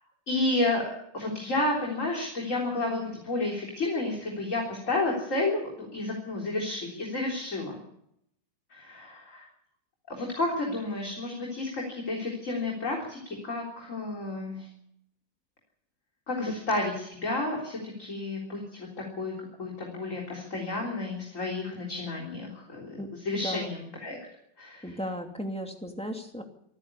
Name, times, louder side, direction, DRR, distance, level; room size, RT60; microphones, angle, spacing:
voice 1, 0.3-0.8 1.1-7.8 8.7-9.5 10.1-14.7 16.3-18.9 19.2-19.3 19.6-24.2 24.6-25.0, left 2 dB, 45° left, -1 dB, 4.1 m, -31 dB
voice 2, 23.4-23.8 24.8-26.4, equal, 5° left, 3 dB, 2.5 m, -35 dB
26.5 x 10.0 x 9.8 m, 0.74 s
omnidirectional pair, 1.9 m